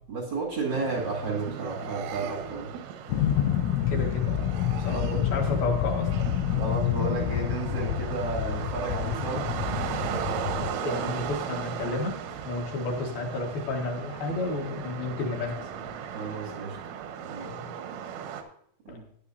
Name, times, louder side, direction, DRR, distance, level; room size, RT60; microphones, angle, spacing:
voice 1, 0.1-2.7 4.9-5.3 6.5-9.5 16.1-16.8 17.2-17.7 18.8-19.0, right 3 dB, 50° right, -2 dB, 1.3 m, -32 dB
sound 1, 0.7-18.4, right 8 dB, 80° right, 3.6 m, -37 dB
sound 2, 3.1-10.7, left 10 dB, 85° left, 2.8 m, -28 dB
voice 2, 3.9-4.5 4.8-6.1 10.8-12.2 12.4-15.6 18.9-19.0, left 3 dB, 60° left, 1 dB, 2.8 m, -31 dB
15.5 x 10.0 x 2.6 m, 0.68 s
omnidirectional pair, 5.8 m